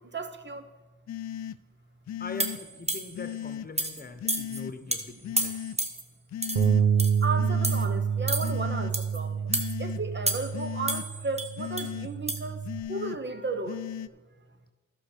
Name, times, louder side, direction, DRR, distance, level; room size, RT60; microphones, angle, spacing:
voice 1, 0.1-0.6 7.2-9.5 9.8-12.6 12.9-13.8, right 3 dB, 35° right, 9 dB, 1.2 m, -34 dB
sound 1, 1.1-1.6 2.1-2.6 3.1-3.7 4.2-4.7 5.2-5.8 6.3-6.8 7.4-7.9 8.4-8.9 9.5-10.0 10.5-11.1 11.6-12.1 12.6-13.2 13.7-14.1, left 11 dB, 60° left, 0.5 m, -36 dB
voice 2, 2.2-5.7, left 4 dB, 30° left, 10 dB, 1.2 m, -42 dB
sound 2, 2.4-3.2 3.8-4.0 4.3-4.6 4.9-5.0 5.4-6.0 6.4-6.7 7.0-7.3 7.6-7.9 8.3-8.5 8.9-9.2 9.5-9.7 10.3-10.6 10.9-11.9 12.3-12.4, right 2 dB, 20° right, 1.3 m, -30 dB
Bass guitar, 6.6-12.8, right 7 dB, 75° right, 0.9 m, -28 dB
11.5 x 6.1 x 6.7 m, 1.2 s
cardioid pair, 55°, 32 cm